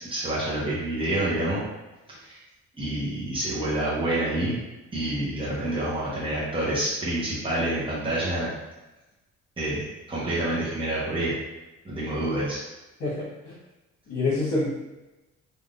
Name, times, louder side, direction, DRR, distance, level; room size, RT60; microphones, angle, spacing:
voice 1, 0.1-1.6 2.1-2.4 2.8-4.6 4.9-8.5 9.6-11.3 11.8-12.6, right 1 dB, 15° right, -9 dB, 1.1 m, -27 dB
voice 2, 13.0-13.5 14.1-14.7, left 2 dB, 55° left, -7 dB, 1.1 m, -27 dB
3.5 x 2.6 x 2.5 m, 1.0 s
cardioid pair, 90°, 30 cm